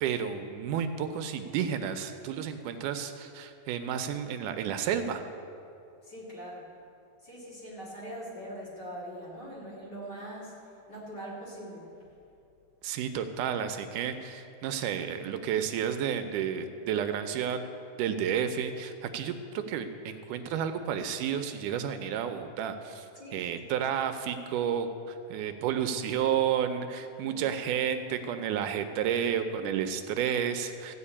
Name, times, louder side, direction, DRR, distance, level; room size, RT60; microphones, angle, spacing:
voice 1, 0.0-5.2 12.8-17.7 18.0-23.1 23.3-31.0, right 8 dB, 80° right, 8 dB, 2.1 m, -31 dB
voice 2, 6.0-6.7 7.2-11.9 23.2-23.4 27.2-27.4, equal, 35° left, -6 dB, 2.5 m, -42 dB
14.5 x 5.1 x 8.5 m, 2.6 s
omnidirectional pair, 3.7 m